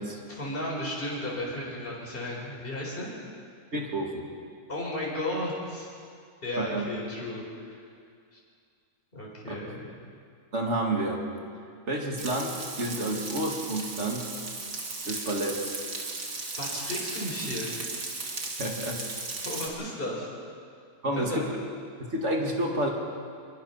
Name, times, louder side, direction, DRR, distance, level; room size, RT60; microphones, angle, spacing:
voice 1, 0.3-3.1 4.7-5.9 6.4-7.8 8.3-8.4 9.1-9.9 16.5-17.7 19.4-20.3 21.1-21.4, left 1 dB, 35° left, -4 dB, 4.9 m, -34 dB
voice 2, 3.7-4.3 6.6-6.8 9.5-9.7 10.5-11.2 11.9-14.3 15.0-15.7 18.6-19.0 21.0-21.5 22.0-22.9, right 1 dB, 45° right, 0 dB, 2.9 m, -30 dB
Frying (food), 12.2-19.7, right 3 dB, 85° right, 2.9 m, -36 dB
24.5 x 22.0 x 5.9 m, 2.3 s
omnidirectional pair, 1.7 m